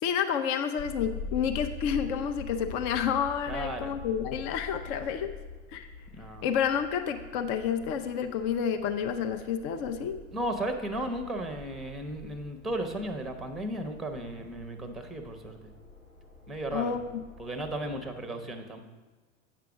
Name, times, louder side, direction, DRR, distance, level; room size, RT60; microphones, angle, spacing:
voice 1, 0.0-5.3 5.7-5.9 6.4-10.2 16.7-17.2, left 8 dB, 40° left, 7 dB, 0.5 m, -30 dB
sound 1, 0.8-18.2, left 4 dB, 90° left, 1.5 m, -44 dB
voice 2, 3.5-3.9 6.1-6.4 10.3-15.7 16.5-17.0 17.4-18.8, right 1 dB, ahead, 6 dB, 0.7 m, -35 dB
9.1 x 5.8 x 4.9 m, 1.3 s
figure-of-eight pair, 85°, 39 cm